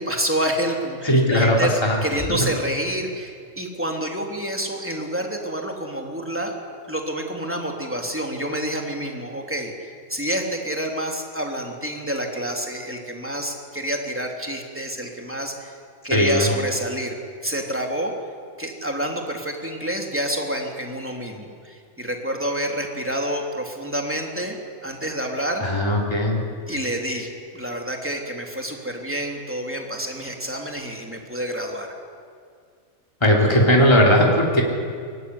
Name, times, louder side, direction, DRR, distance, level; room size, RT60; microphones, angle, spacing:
voice 1, 0.0-1.7 2.0-6.5 6.9-15.7 16.0-17.1 17.4-18.1 18.6-24.6 24.8-25.6 26.7-31.9, right 1 dB, 10° right, 1 dB, 3.3 m, -28 dB
voice 2, 1.0-2.0 2.3-2.5 16.1-16.5 25.6-26.4 33.2-34.6, equal, 20° left, -1 dB, 3.4 m, -18 dB
23.5 x 20.5 x 9.8 m, 2.2 s
omnidirectional pair, 1.4 m